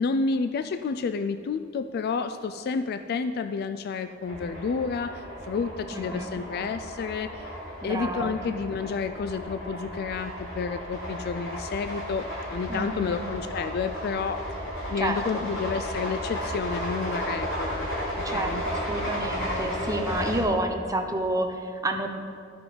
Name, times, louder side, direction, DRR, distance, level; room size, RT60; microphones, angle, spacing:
voice 1, 0.0-7.5 7.8-14.4 14.9-17.9 18.2-18.6, left 5 dB, 50° left, 9 dB, 0.3 m, -30 dB
sound 1, 4.2-20.4, equal, 90° left, 2.8 m, -34 dB
voice 2, 5.9-6.4 7.8-8.4 12.7-13.3 15.0-15.5 18.2-22.1, right 1 dB, 15° right, 5 dB, 0.7 m, -30 dB
12.0 x 6.0 x 5.0 m, 2.2 s
head